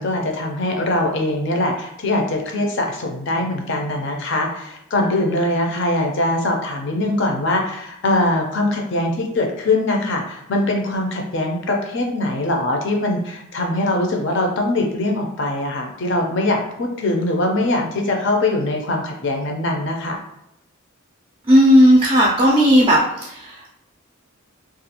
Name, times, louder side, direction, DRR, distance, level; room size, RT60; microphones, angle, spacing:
voice 1, 0.0-16.6 17.0-20.2, left 2 dB, 60° left, 2 dB, 0.5 m, -22 dB
voice 2, 21.5-23.7, equal, 25° right, -3 dB, 0.4 m, -14 dB
2.5 x 2.3 x 2.8 m, 0.82 s
head